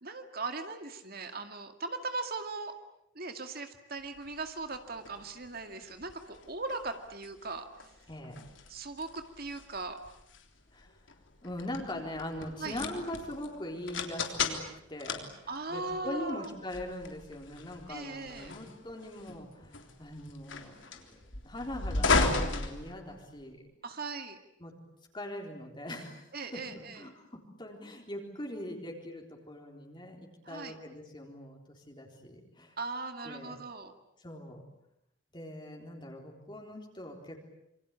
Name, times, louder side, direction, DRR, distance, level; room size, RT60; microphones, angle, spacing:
voice 1, 0.0-2.8 3.2-7.9 8.7-10.0 12.6-12.8 15.5-16.5 17.9-18.5 23.8-24.4 26.3-27.1 30.4-30.8 32.8-33.9, right 3 dB, 50° right, 7 dB, 2.1 m, -39 dB
sound 1, 4.1-23.5, left 3 dB, 75° left, 3.6 m, -36 dB
voice 2, 8.1-8.4 10.7-11.0 11.4-14.6 14.9-23.6 24.6-24.7 25.1-26.6 26.9-32.8 33.2-33.6 34.2-34.7 35.3-37.4, left 1 dB, 25° left, 1 dB, 4.0 m, -42 dB
27.5 x 25.5 x 8.4 m, 0.79 s
head